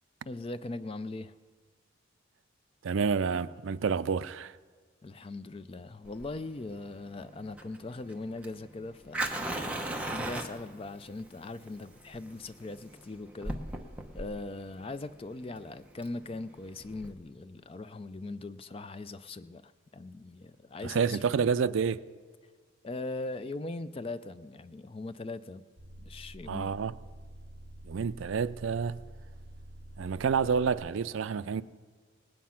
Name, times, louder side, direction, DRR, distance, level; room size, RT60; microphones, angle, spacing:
voice 1, 0.3-1.3 5.0-9.5 10.0-13.6 14.1-21.2 22.8-25.6 26.0-26.7, left 2 dB, 25° left, 0.3 m, -40 dB
voice 2, 2.8-4.6 20.8-22.0 26.5-26.9 27.8-29.0 30.0-31.6, right 6 dB, 70° right, 0.4 m, -29 dB
Fire, 6.1-17.1, right 1 dB, 5° right, 0.9 m, -39 dB
sound 1, 25.8-30.8, right 1 dB, 50° right, 5.1 m, -48 dB
18.5 x 9.4 x 5.8 m
head